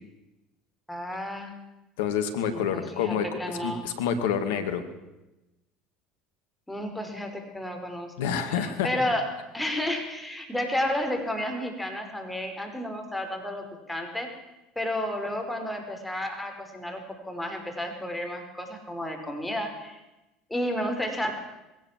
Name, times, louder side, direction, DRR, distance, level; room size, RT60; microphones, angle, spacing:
voice 1, 0.9-1.5 2.5-3.8 6.7-8.1 8.5-9.3 9.5-14.3 14.8-20.0 20.5-21.3, left 1 dB, 5° left, 4 dB, 5.3 m, -32 dB
voice 2, 2.0-4.8 8.2-8.9, left 7 dB, 75° left, 8 dB, 2.3 m, -28 dB
20.5 x 17.5 x 7.6 m, 0.97 s
hypercardioid pair, 75°, 0 cm